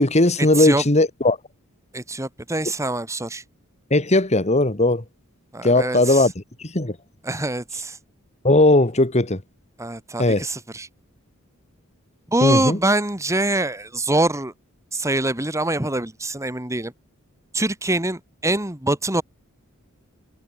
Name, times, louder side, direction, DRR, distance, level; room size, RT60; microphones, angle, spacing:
voice 1, 0.0-1.4 3.9-5.0 5.6-6.3 6.6-7.0 8.4-9.4 10.2-10.5 12.4-12.8, left 2 dB, 30° left, 2.2 m, -18 dB
voice 2, 1.9-3.4 5.5-6.3 7.2-8.0 9.8-10.9 12.3-14.5 14.9-16.9 17.5-19.2, right 2 dB, 15° right, 2.5 m, -24 dB
head